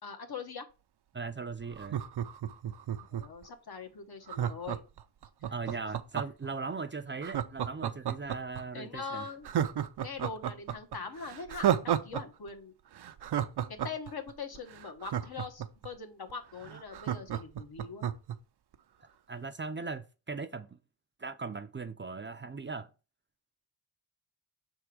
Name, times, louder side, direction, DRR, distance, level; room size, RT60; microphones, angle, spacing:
voice 1, 0.0-0.7 3.0-4.8 5.7-5.8 8.7-9.5 10.0-12.7 13.8-18.1, left 5 dB, 65° left, 1.4 m, -42 dB
voice 2, 1.1-2.0 5.5-9.3 19.3-20.8 21.2-22.9, right 4 dB, 30° right, 0.5 m, -39 dB
Laughter, 1.7-3.4 4.3-6.5 7.2-8.6 9.0-9.1 9.4-12.2 12.5-12.6 13.0-15.9 16.3-16.4 16.6-18.4 18.7-18.8, right 10 dB, 75° right, 0.6 m, -32 dB
6.8 x 3.5 x 4.7 m
wide cardioid pair, 85°, 40 cm